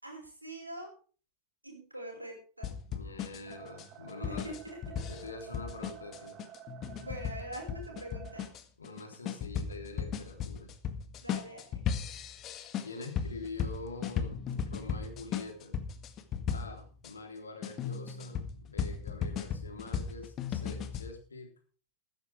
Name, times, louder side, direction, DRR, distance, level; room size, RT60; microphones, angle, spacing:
voice 1, 0.0-0.9 1.6-2.7 4.2-5.0 7.0-8.5 11.2-11.8, right 1 dB, 85° right, 2 dB, 5.4 m, -44 dB
sound 1, 2.6-17.1 17.6-21.1, left 7 dB, 35° left, 1.8 m, -36 dB
voice 2, 2.9-4.6 5.1-6.4 8.8-10.7 12.8-15.7 16.5-21.5, left 3 dB, 75° left, 4 dB, 3.7 m, -45 dB
sound 2, 3.5-8.5, right 10 dB, 35° right, 2.5 m, -51 dB
15.0 x 13.5 x 3.5 m, 0.40 s
figure-of-eight pair, 90°, 0 cm